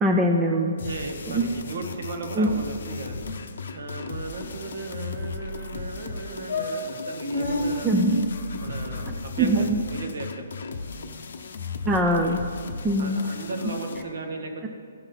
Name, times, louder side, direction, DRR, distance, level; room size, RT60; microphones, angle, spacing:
voice 1, 0.0-0.7 1.3-1.6 2.3-2.5 7.8-8.3 9.4-9.8 11.8-12.4 12.8-13.2, right 1 dB, 10° right, 2 dB, 0.3 m, -22 dB
sound 1, 0.7-1.6 1.9-2.0 2.3-2.5 2.8-2.9 3.1-3.4 4.0-5.0 5.7-5.8 6.1-6.2 6.5-7.6 8.5-9.5, left 2 dB, 20° left, 2.6 m, -34 dB
sound 2, 0.8-14.0, left 4 dB, 60° left, 0.7 m, -37 dB
voice 2, 0.8-3.2 3.7-7.9 8.6-10.5 13.0-14.7, right 3 dB, 55° right, 3 dB, 1.3 m, -36 dB
15.5 x 5.6 x 4.1 m, 2.4 s
hypercardioid pair, 175°, 0 cm